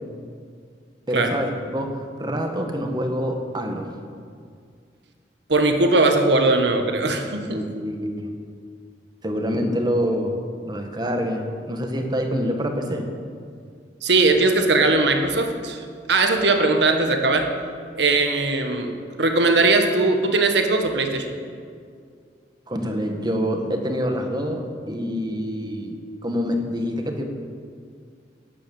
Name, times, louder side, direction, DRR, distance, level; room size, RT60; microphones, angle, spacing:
voice 1, 1.1-3.9 7.4-8.3 9.2-10.4 10.7-13.1 22.7-26.0 26.2-27.2, equal, 25° right, 4 dB, 1.5 m, -26 dB
voice 2, 5.5-7.6 14.0-17.5 17.9-21.3, right 3 dB, 75° right, 5 dB, 1.5 m, -20 dB
12.5 x 10.0 x 8.3 m, 2.2 s
head